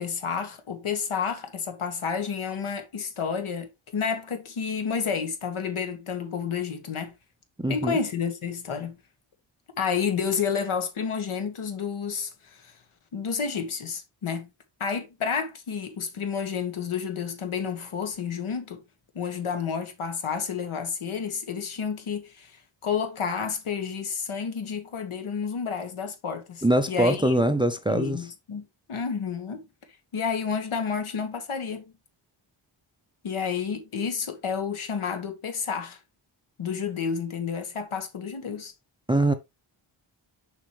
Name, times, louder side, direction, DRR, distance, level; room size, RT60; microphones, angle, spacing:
voice 1, 0.0-7.1 7.7-8.9 9.8-12.7 13.1-14.5 14.8-18.8 19.1-22.5 22.8-27.5 27.9-29.7 30.1-31.8 33.2-36.0 36.6-38.7, left 6 dB, 85° left, 1.7 m, -30 dB
voice 2, 7.6-8.0 26.6-28.3 39.1-39.3, right 1 dB, 10° right, 0.4 m, -23 dB
7.0 x 5.3 x 3.2 m
wide cardioid pair, 180°, 48 cm